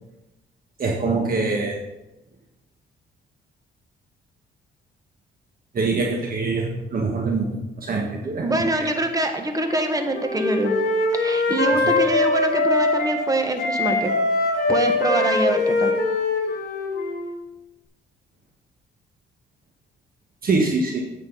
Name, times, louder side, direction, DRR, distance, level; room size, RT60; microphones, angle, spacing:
voice 1, 0.8-1.8 5.7-8.9 11.8-11.9 20.4-21.0, right 3 dB, 45° right, 0 dB, 1.5 m, -24 dB
voice 2, 8.4-10.7 11.1-14.1 14.7-15.9, right 1 dB, 20° right, 5 dB, 1.4 m, -24 dB
Wind instrument woodwind instrument, 9.7-13.2 13.6-17.3, left 2 dB, 55° left, 3.3 m, -22 dB
9.8 x 8.1 x 4.0 m, 0.97 s
cardioid pair, 90°, 20 cm